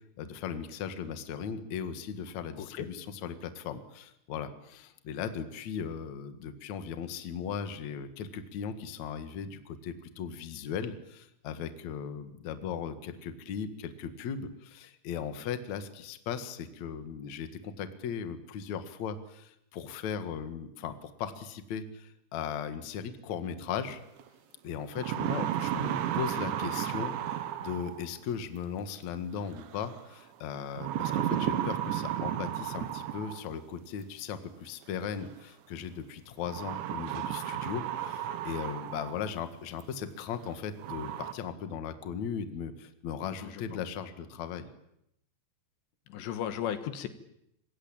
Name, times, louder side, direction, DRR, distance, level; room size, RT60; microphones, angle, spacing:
voice 1, 0.2-24.0 24.6-44.7, left 7 dB, 50° left, 9 dB, 2.5 m, -38 dB
voice 2, 2.6-2.9 25.3-25.5 43.4-43.8 46.1-47.1, left 10 dB, 80° left, 10 dB, 3.6 m, -35 dB
sound 1, 24.2-24.3 24.8-28.2 29.6-30.0 30.8-33.6 34.8-34.9 36.4-39.3 39.8-39.9 40.4-40.5 40.8-41.3, right 11 dB, 85° right, 3.8 m, -33 dB
26.0 x 22.5 x 8.8 m, 0.78 s
omnidirectional pair, 5.1 m